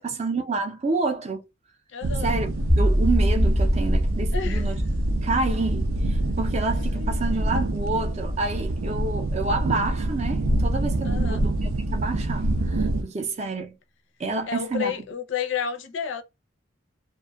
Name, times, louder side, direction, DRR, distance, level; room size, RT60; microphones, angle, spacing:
voice 1, 0.0-1.4 2.2-2.5 2.8-4.8 5.2-13.8 14.2-14.9, right 3 dB, 30° right, 0.4 m, -29 dB
voice 2, 1.9-2.3 4.3-4.7 6.9-7.5 11.0-11.4 14.5-16.2, left 7 dB, 65° left, 0.5 m, -31 dB
sound 1, 2.0-13.0, right 1 dB, 90° right, 0.5 m, -26 dB
sound 2, 2.7-8.8, equal, ahead, 0.7 m, -25 dB
2.5 x 2.2 x 2.2 m
head